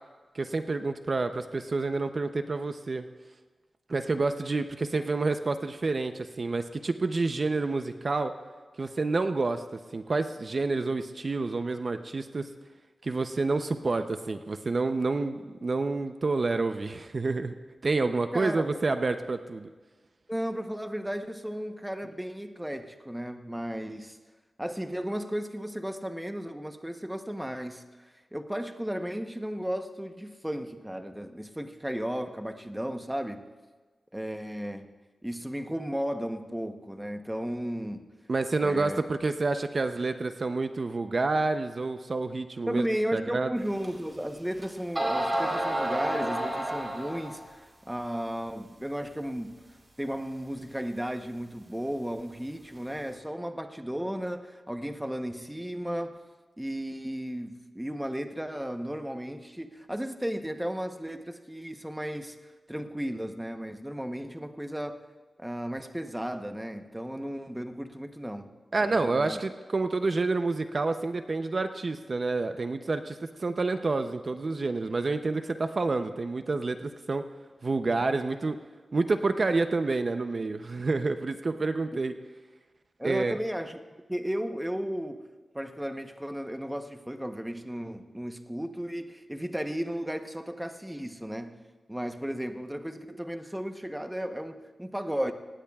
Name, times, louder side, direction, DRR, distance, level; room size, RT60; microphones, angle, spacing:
voice 1, 0.3-3.1 3.9-8.3 8.8-9.6 9.9-12.5 13.0-17.5 17.8-19.7 38.3-42.9 43.1-43.5 68.7-77.2 77.6-78.6 78.9-82.1 83.0-83.3, right 3 dB, 45° right, 8 dB, 0.6 m, -28 dB
voice 2, 18.3-18.8 20.3-24.2 24.6-27.8 28.3-33.5 34.1-34.9 35.2-38.0 38.6-39.0 42.7-49.5 50.0-56.2 56.6-62.4 62.7-65.0 65.4-68.5 68.8-69.4 81.9-82.0 83.0-83.8 84.1-85.2 85.5-91.5 91.9-95.3, equal, 5° right, 6 dB, 0.9 m, -34 dB
sound 1, 43.8-43.9 44.6-44.7 45.0-47.4, right 1 dB, 30° right, 4.6 m, -29 dB
24.5 x 19.0 x 2.4 m, 1.3 s
wide cardioid pair, 105°, 0 cm